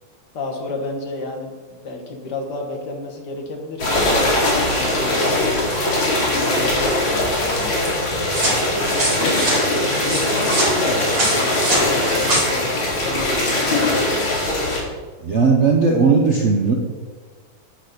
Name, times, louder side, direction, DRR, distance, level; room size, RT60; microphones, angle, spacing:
voice 1, 0.3-4.4 4.9-14.6, left 3 dB, 60° left, 2 dB, 1.8 m, -31 dB
sound 1, 3.8-14.8, left 1 dB, 75° left, 2.9 m, -21 dB
sound 2, 8.3-12.4, right 1 dB, 70° right, 3.8 m, -24 dB
voice 2, 15.2-16.8, right 4 dB, 55° right, 0 dB, 0.8 m, -16 dB
10.5 x 4.1 x 6.6 m, 1.4 s
omnidirectional pair, 2.2 m